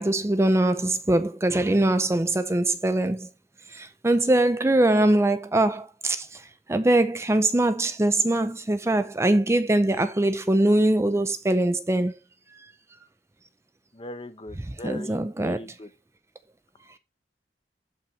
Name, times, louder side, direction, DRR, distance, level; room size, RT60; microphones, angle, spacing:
voice 1, 0.0-3.3 3.7-12.1 12.5-12.6 14.6-15.6, right 1 dB, 15° right, 0.5 m, -22 dB
voice 2, 13.9-15.9, left 2 dB, 30° left, 0.9 m, -39 dB
12.0 x 5.6 x 3.2 m
head